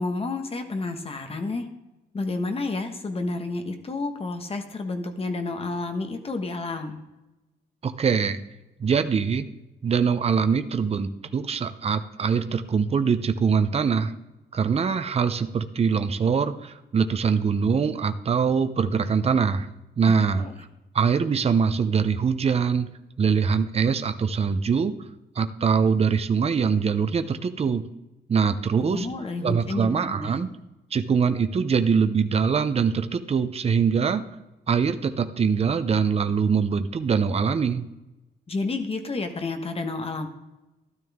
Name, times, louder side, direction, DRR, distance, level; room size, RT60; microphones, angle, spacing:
voice 1, 0.0-1.7 2.1-7.0 20.3-20.5 28.8-30.4 38.5-40.3, left 3 dB, 30° left, 6 dB, 1.3 m, -30 dB
voice 2, 7.8-8.4 8.8-9.5 9.8-14.1 14.5-19.7 20.0-20.4 20.9-22.9 23.2-24.9 25.4-27.8 28.3-29.1 29.4-30.5 30.9-34.2 34.7-37.8, right 6 dB, 35° right, 9 dB, 0.6 m, -23 dB
12.5 x 12.5 x 3.6 m, 0.99 s
wide cardioid pair, 160°, 18 cm